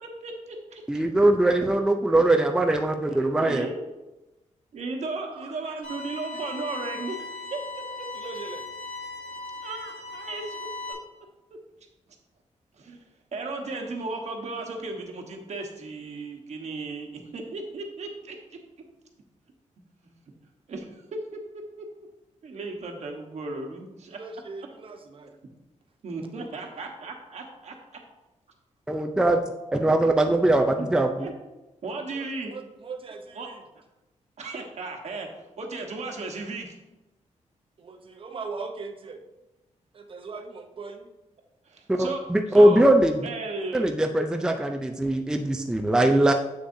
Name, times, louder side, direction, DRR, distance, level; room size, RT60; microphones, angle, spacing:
voice 1, 0.0-0.8 3.4-3.8 4.7-7.6 9.6-11.0 12.7-18.4 20.0-20.1 20.7-21.0 21.3-21.4 21.8-21.9 22.4-24.2 26.0-27.7 30.8-30.9 31.2-31.3 31.8-32.5 33.3-33.5 34.4-36.7 41.6-42.2 42.5-42.9 43.2-43.9, right 3 dB, 60° right, 2 dB, 1.2 m, -35 dB
voice 2, 0.9-3.7 28.9-29.4 29.7-31.3 41.9-43.1 43.7-46.3, right 1 dB, 5° right, 4 dB, 0.4 m, -21 dB
voice 3, 5.3-6.0 6.3-6.4 8.1-8.7 24.1-25.3 26.6-27.1 32.1-33.6 37.8-39.2 39.9-41.1, right 4 dB, 45° right, 4 dB, 0.8 m, -40 dB
sound 1, 5.8-10.9, left 3 dB, 85° left, 2.5 m, -38 dB
7.8 x 6.6 x 2.7 m, 1.0 s
wide cardioid pair, 125°, 13 cm